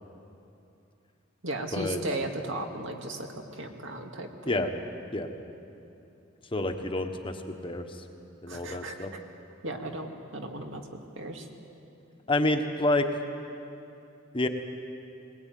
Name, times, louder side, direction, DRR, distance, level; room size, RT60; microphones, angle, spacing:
voice 1, 1.4-3.3 3.5-4.7 8.5-9.2 9.6-10.8 11.2-11.5, right 1 dB, 70° right, 3 dB, 2.3 m, -36 dB
voice 2, 6.5-8.0 8.4-9.1 12.3-13.2 14.3-14.5, left 2 dB, 25° left, 5 dB, 1.3 m, -28 dB
21.0 x 20.5 x 9.4 m, 2.7 s
head